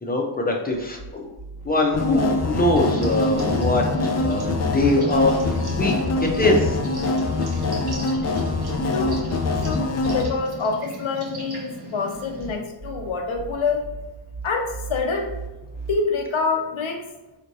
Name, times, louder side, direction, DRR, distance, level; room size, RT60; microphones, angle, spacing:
voice 1, 0.0-1.3 1.6-5.9 6.4-6.8, left 1 dB, 20° left, 0 dB, 0.8 m, -22 dB
sound 1, 0.7-2.6 4.5-6.4 8.3-10.3 12.1-16.0, right 3 dB, 15° right, 1.4 m, -39 dB
sound 2, 1.9-10.2, left 3 dB, 35° left, 0.5 m, -24 dB
sound 3, 2.7-12.6, equal, 55° right, 1.1 m, -35 dB
voice 2, 8.8-9.2 9.6-13.8 14.4-15.4 15.9-17.0, left 4 dB, 80° left, 3 dB, 0.8 m, -26 dB
4.9 x 3.2 x 2.7 m, 1.1 s
wide cardioid pair, 85°, 47 cm